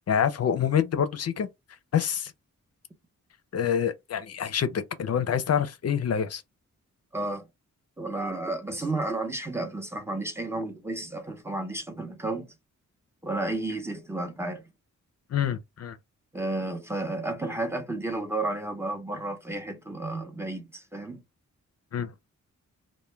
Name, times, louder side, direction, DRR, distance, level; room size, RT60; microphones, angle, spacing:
voice 1, 0.1-1.5 1.9-2.3 3.5-6.4 15.3-16.0 21.9-22.1, left 8 dB, 50° left, 0.5 m, -26 dB
voice 2, 7.1-7.4 8.0-12.5 13.2-14.6 16.3-21.2, right 2 dB, 10° right, 0.6 m, -32 dB
2.2 x 2.1 x 3.1 m
wide cardioid pair, 105°, 31 cm